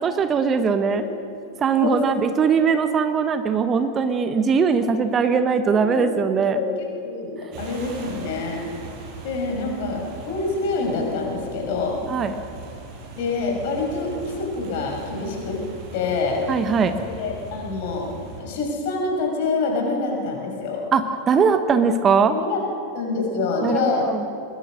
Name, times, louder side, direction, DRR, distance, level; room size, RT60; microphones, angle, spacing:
voice 1, 0.0-1.0 1.6-6.6 12.1-12.3 16.5-17.0 20.9-22.3 23.6-24.2, right 5 dB, 25° right, 9 dB, 1.1 m, -20 dB
voice 2, 1.8-2.1 2.6-2.7 4.1-4.2 5.7-8.6 9.2-12.0 13.1-15.6 15.9-16.4 17.0-18.1 18.4-20.8 22.3-22.6 22.9-24.1, left 3 dB, 50° left, 0 dB, 6.4 m, -26 dB
sound 1, 7.5-18.4, right 4 dB, 45° right, 5.9 m, -39 dB
24.0 x 21.5 x 6.5 m, 2.5 s
figure-of-eight pair, 90°, 0 cm